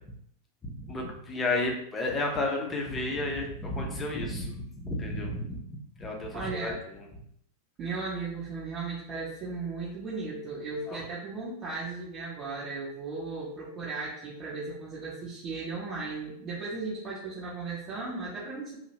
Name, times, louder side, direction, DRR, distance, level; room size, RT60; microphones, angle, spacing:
voice 1, 0.6-7.0 10.9-11.0, left 2 dB, 15° left, 0 dB, 0.6 m, -32 dB
voice 2, 6.3-6.8 7.8-18.8, right 3 dB, 30° right, -8 dB, 0.7 m, -36 dB
2.6 x 2.0 x 2.9 m, 0.70 s
figure-of-eight pair, 90°, 0 cm